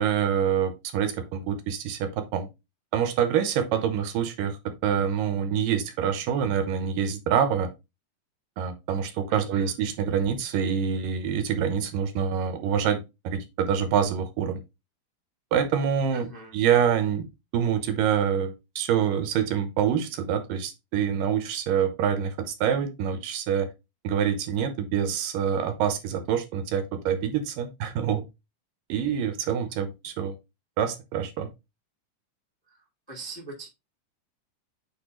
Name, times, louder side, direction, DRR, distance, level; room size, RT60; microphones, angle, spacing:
voice 1, 0.0-2.5 2.9-7.7 8.6-14.6 15.5-16.3 16.5-17.3 17.5-23.7 24.0-28.2 28.9-30.3 30.8-31.5, right 8 dB, 85° right, 2.6 m, -26 dB
voice 2, 9.3-9.7 16.1-16.5 32.7-32.8 33.1-33.7, right 2 dB, 15° left, 0.7 m, -41 dB
8.2 x 3.3 x 3.8 m
omnidirectional pair, 3.8 m